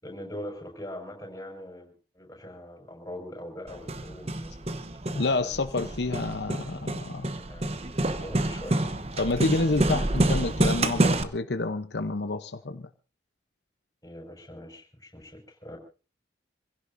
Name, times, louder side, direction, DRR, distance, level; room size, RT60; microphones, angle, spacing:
voice 1, 0.0-4.7 5.4-5.6 6.1-6.2 7.4-7.7 8.2-8.8 14.0-15.8, left 1 dB, 20° left, 5.5 m, -42 dB
Hammer, 3.7-11.2, right 1 dB, 35° right, 0.9 m, -28 dB
voice 2, 5.1-7.3 9.2-12.9, left 2 dB, 80° left, 0.9 m, -28 dB
27.0 x 16.5 x 2.7 m
head